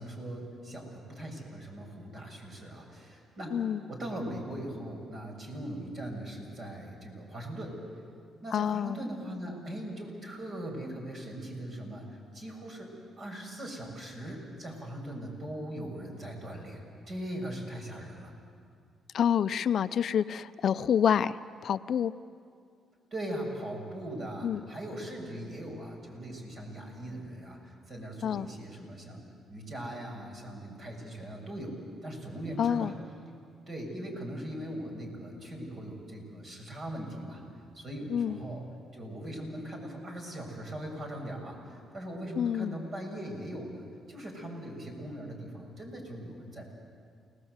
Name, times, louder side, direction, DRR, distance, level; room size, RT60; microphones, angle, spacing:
voice 1, 0.0-3.5 3.9-7.8 8.4-12.9 13.2-18.3 23.1-33.0 33.7-37.4 37.7-46.7, right 1 dB, 45° right, 1 dB, 6.9 m, -40 dB
voice 2, 3.5-3.8 8.5-9.0 19.1-22.1 24.4-24.6 28.2-28.5 32.6-32.9 38.1-38.4 42.4-42.7, left 8 dB, 60° left, 13 dB, 0.6 m, -27 dB
30.0 x 19.0 x 8.1 m, 2.3 s
cardioid pair, 90°, 0 cm